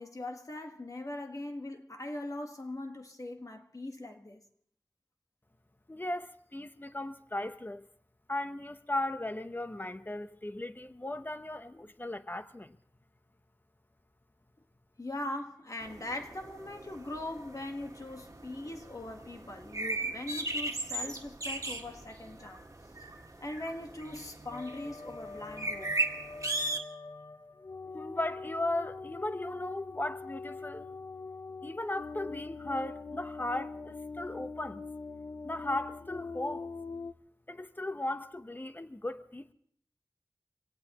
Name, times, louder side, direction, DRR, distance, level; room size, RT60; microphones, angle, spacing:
voice 1, 0.0-4.4 15.0-22.7 23.4-25.9, left 1 dB, 50° left, 1.5 m, -41 dB
voice 2, 5.9-7.8 8.3-12.8 27.9-30.9 31.6-34.8 35.4-36.7 37.5-39.5, left 1 dB, 25° left, 0.9 m, -36 dB
sound 1, 15.8-26.8, right 2 dB, 50° right, 1.7 m, -38 dB
sound 2, 24.5-37.1, left 4 dB, 65° left, 0.6 m, -43 dB
25.0 x 17.5 x 3.0 m
wide cardioid pair, 55°, 7 cm